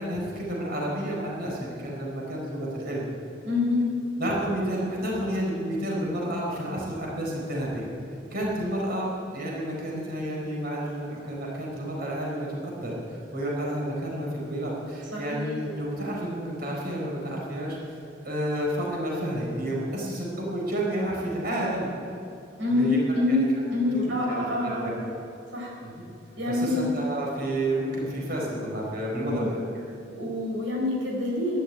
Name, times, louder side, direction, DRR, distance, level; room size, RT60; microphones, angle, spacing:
voice 1, 0.0-3.1 4.2-7.9 8.3-21.9 22.7-23.4 23.9-25.1 25.8-26.1 26.5-29.6, right 1 dB, 55° right, -3 dB, 4.5 m, -30 dB
voice 2, 3.4-3.9 15.1-15.5 22.6-23.4 23.7-24.9 25.5-25.7 26.3-26.9 29.1-29.5 30.1-31.6, left 2 dB, 85° right, -2 dB, 4.3 m, -26 dB
13.0 x 11.5 x 9.2 m, 2.8 s
head